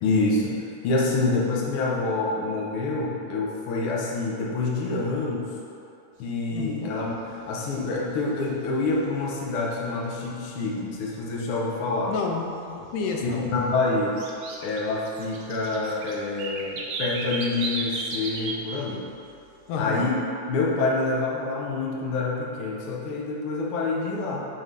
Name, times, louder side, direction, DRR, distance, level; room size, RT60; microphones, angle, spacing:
voice 1, 0.0-5.5 6.2-12.1 13.2-14.2 14.6-19.1 19.8-20.1 20.5-24.5, left 3 dB, 70° left, -3 dB, 1.3 m, -27 dB
sound 1, 6.2-6.3 6.7-6.9 7.2-7.7 8.1-9.3 9.7-9.8 10.3-10.4 10.9-11.0 11.3-11.4 11.9-12.7 12.9-18.6 18.9-19.3, right 3 dB, 80° right, 1.3 m, -34 dB
voice 2, 6.5-7.0 12.1-13.4 19.7-20.1, left 4 dB, 90° left, 1 dB, 2.2 m, -30 dB
6.0 x 3.2 x 5.2 m, 2.7 s
omnidirectional pair, 3.5 m